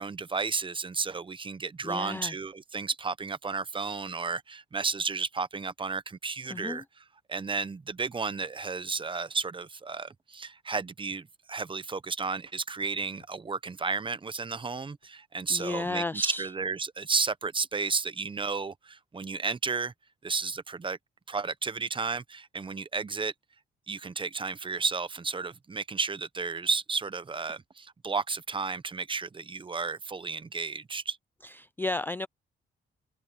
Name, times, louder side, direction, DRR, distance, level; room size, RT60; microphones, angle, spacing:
voice 1, 0.0-6.8 7.3-19.9 20.2-21.0 21.3-23.3 23.9-31.2, right 4 dB, 25° right, 0.9 m, -32 dB
voice 2, 1.8-2.4 6.5-6.8 15.5-16.5 31.4-32.3, left 2 dB, 10° left, 0.3 m, -33 dB
sound 1, 6.4-6.6 6.9-7.0 8.4-8.6 11.1-11.3 12.8-13.4 15.0-15.2, left 11 dB, 75° left, 3.7 m, -63 dB
open air
cardioid pair, 90°, 20 cm